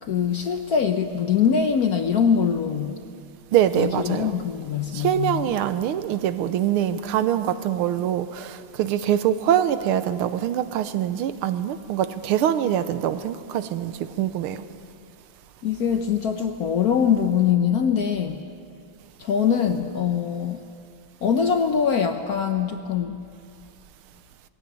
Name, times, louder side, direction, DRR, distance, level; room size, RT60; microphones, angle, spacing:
voice 1, 0.0-3.0 3.7-5.6 15.6-18.4 19.2-20.6 21.2-23.2, left 7 dB, 65° left, 7 dB, 1.0 m, -23 dB
voice 2, 3.5-4.3 4.9-14.6, right 10 dB, 85° right, 12 dB, 1.6 m, -24 dB
19.5 x 16.0 x 9.4 m, 2.4 s
omnidirectional pair, 2.4 m